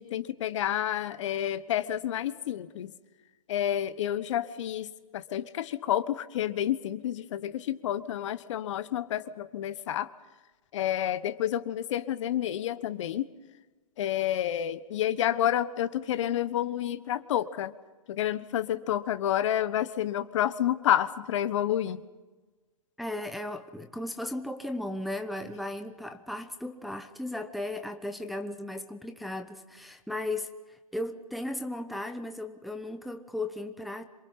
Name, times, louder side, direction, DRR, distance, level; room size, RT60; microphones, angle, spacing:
voice 1, 0.0-2.9 3.5-10.1 10.7-13.3 14.0-17.7 18.1-22.0, left 11 dB, 55° left, 14 dB, 1.2 m, -29 dB
voice 2, 23.0-34.1, left 1 dB, ahead, 5 dB, 1.0 m, -36 dB
27.5 x 24.0 x 5.7 m, 1.2 s
hypercardioid pair, 140°, 19 cm